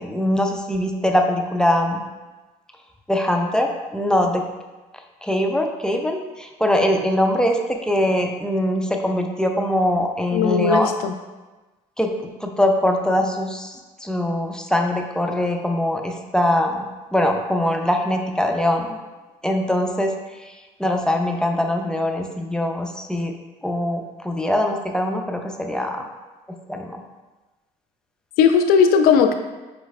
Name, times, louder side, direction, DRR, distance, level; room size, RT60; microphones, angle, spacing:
voice 1, 0.0-2.0 3.1-4.4 5.2-10.9 12.0-13.7 14.0-16.8 17.1-19.0 19.4-20.1 20.8-23.3 23.6-26.0 26.7-27.0, left 1 dB, 5° left, 2 dB, 0.5 m, -22 dB
voice 2, 10.3-11.1 28.4-29.3, left 6 dB, 75° left, 7 dB, 0.4 m, -17 dB
5.3 x 3.1 x 2.3 m, 1.2 s
supercardioid pair, 65°, 16 cm